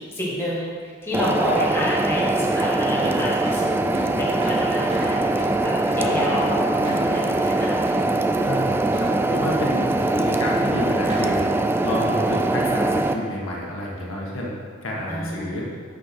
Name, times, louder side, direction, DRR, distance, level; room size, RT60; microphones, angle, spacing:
voice 1, 0.1-3.7 4.3-7.8 15.1-15.6, left 1 dB, 10° left, -7 dB, 2.1 m, -28 dB
sound 1, 1.1-13.1, right 2 dB, 10° right, 0.4 m, -22 dB
sound 2, 3.0-11.6, right 1 dB, 35° right, 2.6 m, -36 dB
voice 2, 8.4-9.9 10.2-11.4 11.8-14.5 14.8-15.7, left 1 dB, 75° left, -4 dB, 1.8 m, -29 dB
10.5 x 6.2 x 4.6 m, 2.1 s
head